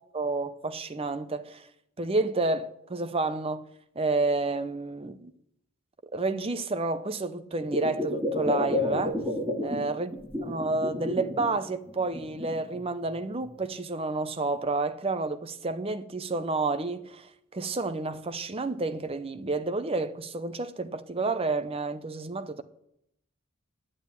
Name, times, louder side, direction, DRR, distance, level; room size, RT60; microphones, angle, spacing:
voice 1, 0.0-1.6 2.0-3.6 4.0-5.3 6.1-9.2 9.6-10.1 10.4-22.6, right 3 dB, 25° right, 0.7 m, -30 dB
sound 1, 7.6-9.8 10.1-11.5 11.9-12.8 13.4-13.5, left 1 dB, 10° right, 2.3 m, -30 dB
10.0 x 8.9 x 8.2 m
head